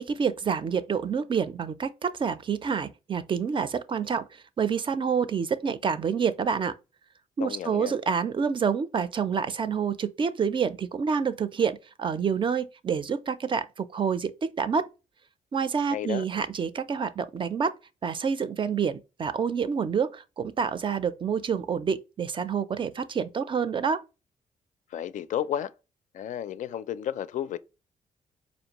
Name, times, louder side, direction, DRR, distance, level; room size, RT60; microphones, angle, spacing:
voice 1, 0.0-6.7 7.4-14.9 15.5-17.7 18.0-24.0, right 6 dB, 40° right, 0.4 m, -28 dB
voice 2, 7.4-7.9 15.9-16.2 24.9-25.7 26.1-27.6, left 10 dB, 70° left, 0.4 m, -32 dB
4.4 x 2.6 x 2.9 m
cardioid pair, 90°, 14 cm